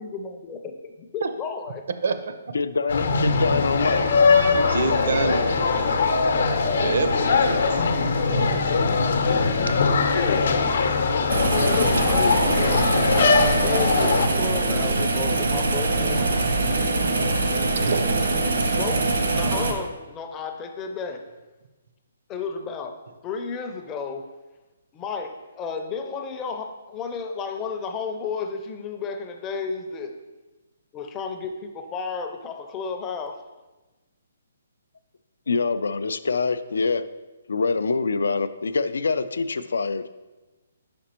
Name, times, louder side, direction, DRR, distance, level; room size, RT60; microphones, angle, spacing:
voice 1, 0.0-0.7 1.1-1.8 10.0-10.7 11.6-12.9 13.1-16.3 18.7-21.2 22.3-23.0 23.2-24.3 24.9-30.1 30.9-33.4, left 5 dB, 15° left, 5 dB, 0.4 m, -32 dB
voice 2, 2.0-2.5 4.7-6.0 6.8-8.8 12.7-12.8 17.8-18.4, right 4 dB, 60° right, 9 dB, 0.5 m, -29 dB
voice 3, 2.5-4.1 35.5-37.1 37.5-40.1, left 4 dB, 85° left, 13 dB, 0.3 m, -25 dB
sound 1, 2.9-14.3, left 4 dB, 70° left, 0.7 m, -21 dB
sound 2, 11.3-19.7, right 2 dB, 80° right, 1.0 m, -23 dB
5.1 x 5.0 x 4.3 m, 1.1 s
hypercardioid pair, 165°, 0 cm